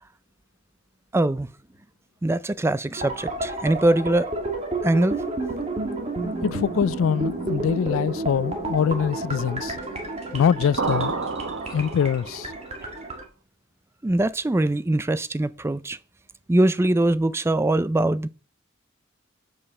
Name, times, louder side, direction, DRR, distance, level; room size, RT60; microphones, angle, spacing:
voice 1, 1.1-1.5 2.2-4.3 4.8-5.2 14.0-16.0 16.5-18.3, right 1 dB, 10° right, 0.3 m, -22 dB
sound 1, 2.9-13.2, right 2 dB, 30° right, 1.8 m, -31 dB
voice 2, 6.4-9.8 10.3-11.1 11.7-12.5, left 7 dB, 70° left, 0.3 m, -23 dB
sound 2, 10.8-12.5, right 4 dB, 70° right, 1.0 m, -29 dB
6.7 x 5.5 x 6.6 m
head